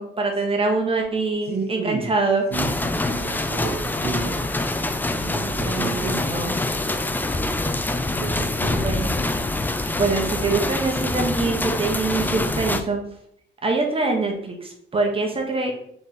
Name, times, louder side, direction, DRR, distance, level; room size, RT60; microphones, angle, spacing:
voice 1, 0.0-2.4 5.6-6.6 8.8-9.1 10.0-13.0 13.6-15.8, right 3 dB, 30° right, 1 dB, 1.2 m, -24 dB
voice 2, 1.5-2.1 2.5-4.4 5.1-6.1 8.1-8.9, right 4 dB, 50° right, 4 dB, 0.7 m, -31 dB
sound 1, 2.5-12.8, left 2 dB, 10° left, 0.4 m, -25 dB
3.6 x 3.5 x 4.2 m, 0.70 s
cardioid pair, 90°, 20 cm